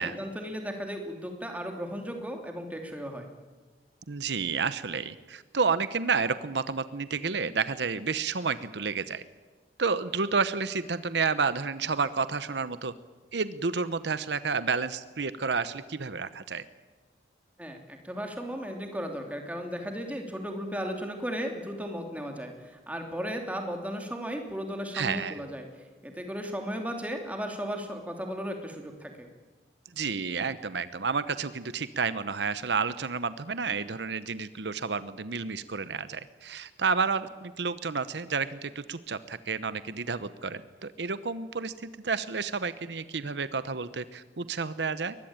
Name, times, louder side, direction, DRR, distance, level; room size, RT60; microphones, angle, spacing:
voice 1, 0.0-3.3 17.6-25.7 26.0-29.3, equal, 10° right, 3 dB, 2.9 m, -35 dB
voice 2, 4.1-9.2 9.8-12.9 13.3-16.7 24.9-25.4 30.0-45.2, right 5 dB, 75° right, 14 dB, 0.9 m, -30 dB
22.5 x 20.0 x 9.0 m, 1.3 s
head